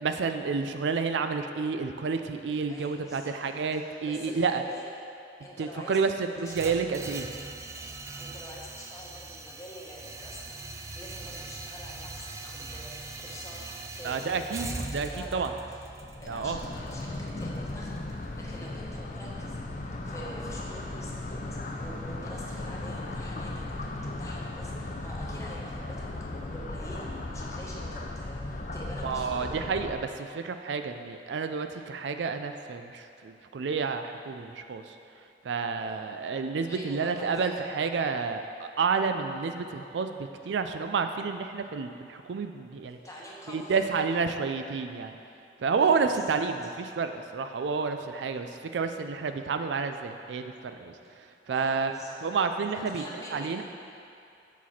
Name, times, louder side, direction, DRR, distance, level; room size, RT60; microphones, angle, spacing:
voice 1, 0.0-4.6 5.6-7.3 14.0-15.5 16.3-16.6 29.0-34.9 35.4-43.0 43.5-45.1 45.6-50.9 51.5-51.9 52.2-53.0 53.3-53.6, right 5 dB, 85° right, 7 dB, 0.4 m, -30 dB
voice 2, 2.7-3.4 3.7-4.9 5.4-6.0 6.4-6.8 8.1-15.8 16.2-27.1 27.3-29.6 35.8-36.0 36.7-37.5 43.0-43.9 45.8-46.4 51.5-52.2 52.7-53.6, equal, 20° left, -4 dB, 1.0 m, -46 dB
sound 1, 6.5-18.5, right 3 dB, 15° right, 0.3 m, -41 dB
sound 2, 15.9-30.0, left 2 dB, 45° left, 0.5 m, -37 dB
7.3 x 5.9 x 4.2 m, 2.6 s
head